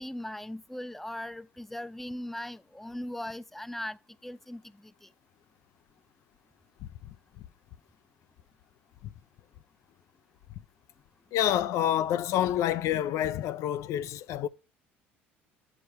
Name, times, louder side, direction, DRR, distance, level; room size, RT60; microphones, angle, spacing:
voice 1, 0.0-5.1, left 1 dB, 5° left, 0.6 m, -39 dB
voice 2, 11.3-14.5, left 11 dB, 60° left, 0.5 m, -27 dB
9.7 x 4.8 x 4.7 m
hypercardioid pair, 65°, 6 cm